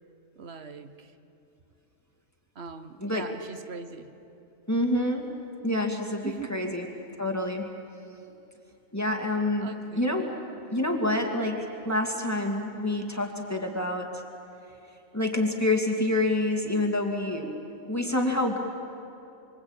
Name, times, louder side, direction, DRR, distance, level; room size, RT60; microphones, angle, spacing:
voice 1, 0.4-1.1 2.5-4.1 6.2-6.8 9.6-10.1, right 5 dB, 55° right, 9 dB, 1.4 m, -41 dB
voice 2, 4.7-5.3 5.6-6.9 7.2-7.7 8.9-10.3 10.7-14.2 15.1-17.5 17.8-18.6, left 1 dB, 10° left, 1 dB, 2.3 m, -27 dB
25.5 x 24.5 x 8.9 m, 2.8 s
omnidirectional pair, 1.4 m